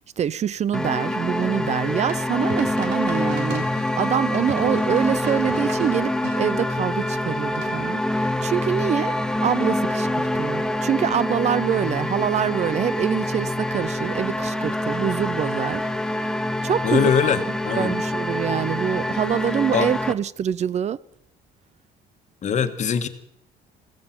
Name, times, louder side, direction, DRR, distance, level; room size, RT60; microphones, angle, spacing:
voice 1, 0.2-16.4 16.6-17.3 17.7-21.0, right 9 dB, 40° right, 0.5 m, -25 dB
sound 1, 0.7-20.1, left 1 dB, 5° left, 0.8 m, -26 dB
sound 2, 2.1-6.4 7.6-8.0, right 5 dB, 90° right, 3.3 m, -37 dB
voice 2, 16.8-18.0 19.7-19.9 22.4-23.1, left 7 dB, 45° left, 1.5 m, -22 dB
16.0 x 14.5 x 5.9 m
cardioid pair, 110°, 17 cm